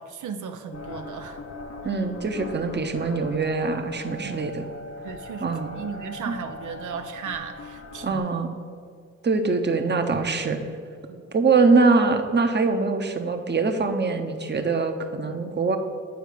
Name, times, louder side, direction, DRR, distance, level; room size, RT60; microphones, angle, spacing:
voice 1, 0.0-1.4 4.2-4.4 5.0-8.2 11.1-11.2, right 6 dB, 85° right, 6 dB, 0.5 m, -36 dB
sound 1, 0.7-8.2, left 2 dB, 60° left, 0.8 m, -39 dB
voice 2, 1.8-4.7 5.4-5.8 6.3-6.4 8.0-8.5 9.2-10.6 11.3-15.8, right 4 dB, 35° right, 6 dB, 0.8 m, -23 dB
8.0 x 4.4 x 5.1 m, 2.2 s
cardioid pair, 55°, 29 cm